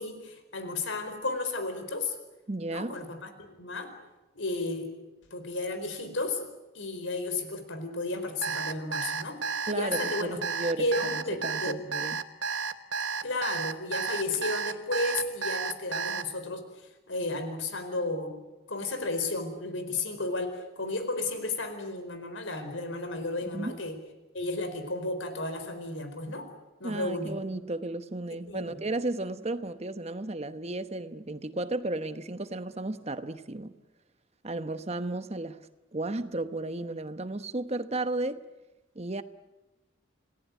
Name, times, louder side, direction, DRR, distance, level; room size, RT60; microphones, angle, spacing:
voice 1, 0.0-2.2 2.7-3.9 4.3-4.9 5.3-6.5 6.7-9.4 9.7-10.4 10.8-11.8 13.2-18.4 18.7-24.0 24.3-26.5 26.8-27.4 28.5-28.8, left 2 dB, 70° left, 4.5 m, -33 dB
voice 2, 2.5-3.0 9.7-10.9 11.1-12.2 23.4-23.8 26.8-33.7 34.4-35.6 35.9-38.4 38.9-39.2, right 2 dB, 30° right, 1.0 m, -34 dB
Alarm, 8.4-16.2, right 5 dB, 65° right, 1.4 m, -32 dB
28.5 x 19.0 x 9.4 m
head